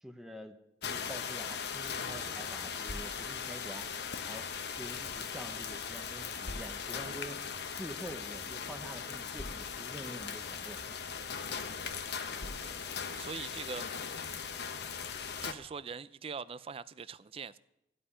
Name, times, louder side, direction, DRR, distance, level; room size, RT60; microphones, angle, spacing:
voice 1, 0.0-3.9 4.2-4.5 4.8-7.4 7.8-10.8, equal, ahead, 0.8 m, -47 dB
sound 1, 0.8-15.5, left 6 dB, 65° left, 0.9 m, -39 dB
sound 2, 2.8-3.5 4.3-5.3 6.4-7.0 7.9-8.1 8.3-8.4 9.3-10.0 10.9-11.1 12.4-13.0, left 1 dB, 85° left, 2.1 m, -46 dB
voice 2, 12.4-14.1 15.4-17.6, right 5 dB, 30° right, 0.4 m, -43 dB
14.5 x 5.6 x 9.8 m
head